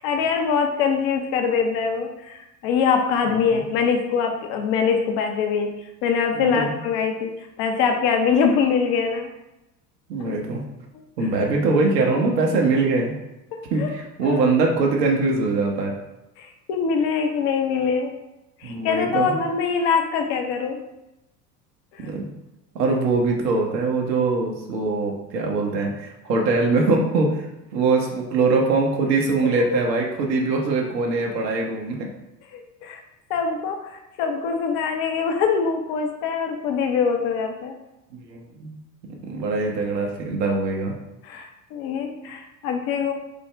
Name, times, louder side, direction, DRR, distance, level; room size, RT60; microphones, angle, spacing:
voice 1, 0.0-9.3 13.7-13.9 14.2-14.5 16.4-18.1 18.6-20.8 21.9-22.2 29.4-29.8 32.5-33.0 33.3-37.7 41.2-43.1, left 6 dB, 50° left, 4 dB, 0.7 m, -23 dB
voice 2, 3.3-3.6 6.3-6.7 10.1-10.6 11.2-13.1 13.7-16.0 18.6-19.4 22.0-22.3 22.7-32.1 38.1-38.8 39.1-40.9, right 3 dB, 70° right, 0 dB, 1.1 m, -22 dB
5.3 x 2.1 x 3.3 m, 0.95 s
hypercardioid pair, 75°, 50 cm